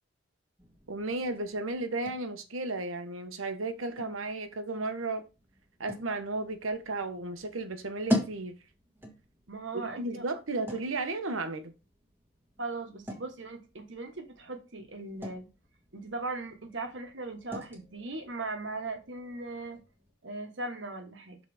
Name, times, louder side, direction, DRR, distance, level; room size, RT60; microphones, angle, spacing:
sound 1, 0.6-20.1, equal, 10° right, 1.4 m, -42 dB
voice 1, 0.9-5.3 5.8-8.6 10.0-11.7, right 2 dB, 90° right, 1.1 m, -34 dB
voice 2, 9.5-10.2 12.6-15.5 15.9-19.8 20.2-21.4, right 2 dB, 65° right, 1.3 m, -38 dB
6.3 x 4.1 x 4.9 m
head